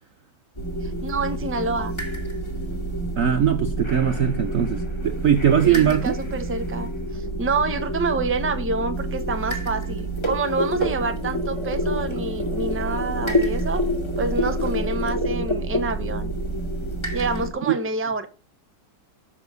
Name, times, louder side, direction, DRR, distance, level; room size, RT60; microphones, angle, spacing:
sound 1, 0.6-17.5, right 1 dB, 15° left, 2.2 m, -27 dB
voice 1, 0.8-1.9 5.6-13.8 14.2-16.3 17.1-18.3, right 3 dB, 10° right, 0.8 m, -27 dB
voice 2, 3.2-6.1 17.7-17.8, right 9 dB, 60° right, 0.9 m, -20 dB
7.2 x 7.0 x 7.9 m
omnidirectional pair, 2.0 m